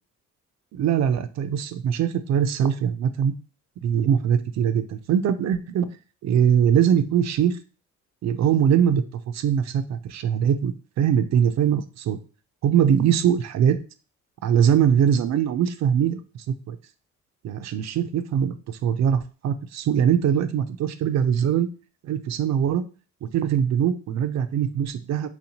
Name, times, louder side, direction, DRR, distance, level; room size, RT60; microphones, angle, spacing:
voice 1, 0.7-3.3 3.8-5.9 6.2-7.6 8.2-9.0 9.3-12.2 12.6-13.8 14.4-16.2 16.5-16.8 17.4-21.7 22.0-22.9 23.2-25.3, right 8 dB, 65° right, 11 dB, 0.4 m, -22 dB
4.2 x 2.7 x 2.9 m, 0.35 s
cardioid pair, 90°, 30 cm